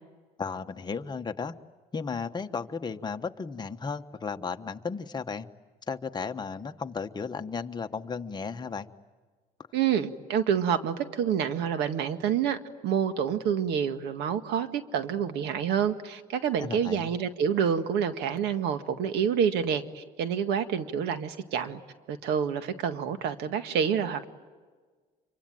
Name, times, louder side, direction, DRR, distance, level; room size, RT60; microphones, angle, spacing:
voice 1, 0.4-1.5 1.9-5.5 5.9-8.9 16.6-17.1, left 5 dB, 25° left, 6 dB, 1.2 m, -34 dB
voice 2, 9.7-12.6 12.8-21.8 22.1-24.3, right 8 dB, 85° right, 9 dB, 1.8 m, -28 dB
26.5 x 24.5 x 9.1 m, 1.4 s
cardioid pair, 110°, 17 cm